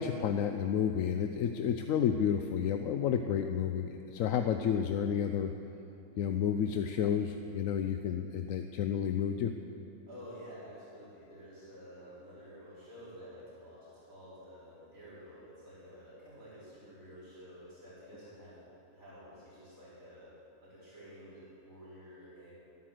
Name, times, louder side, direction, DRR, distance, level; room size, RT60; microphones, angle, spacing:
voice 1, 0.0-5.5 6.2-9.5, left 8 dB, 75° left, 7 dB, 1.0 m, -31 dB
voice 2, 10.1-18.7 18.9-22.5, equal, 75° right, -11 dB, 4.9 m, -51 dB
13.0 x 11.5 x 7.7 m, 3.0 s
omnidirectional pair, 1.4 m